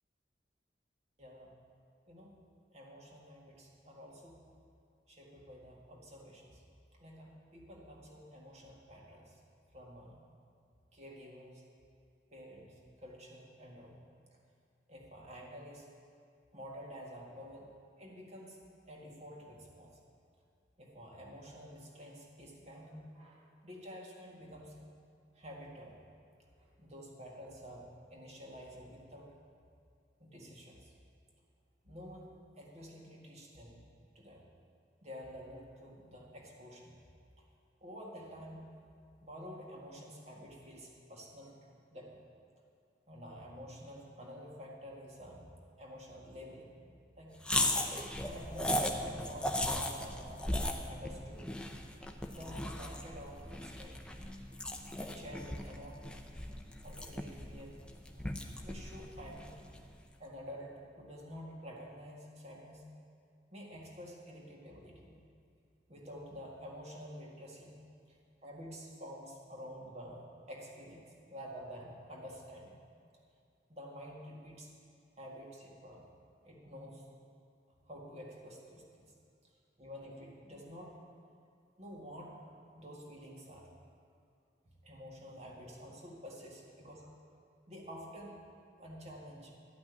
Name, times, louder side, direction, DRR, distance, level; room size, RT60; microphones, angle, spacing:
voice 1, 1.2-1.6 2.1-2.3 2.7-4.4 5.1-6.6 6.9-9.4 9.7-10.2 10.9-11.6 12.3-14.0 14.9-15.9 16.5-17.7 18.0-19.9 20.8-24.8 25.3-26.0 26.6-29.3 30.2-30.9 31.8-33.8 34.2-34.4 35.0-36.9 37.8-38.7 39.2-42.2 43.1-45.5 45.8-46.7 47.2-47.4 48.2-50.6 50.9-51.5 52.3-54.0 55.0-56.1 56.8-57.8 58.6-59.5 60.2-62.9 63.5-65.2 65.9-67.8 68.1-72.9 73.7-74.7 75.2-76.1 76.4-77.1 77.9-79.1 79.4-79.5 79.8-80.9 81.8-82.5 82.7-83.7 84.8-87.1 87.7-88.4 88.8-89.5, equal, 35° right, -2 dB, 1.9 m, -49 dB
sound 1, 47.4-59.9, left 1 dB, 5° left, 0.6 m, -37 dB
12.0 x 6.0 x 9.3 m, 2.3 s
head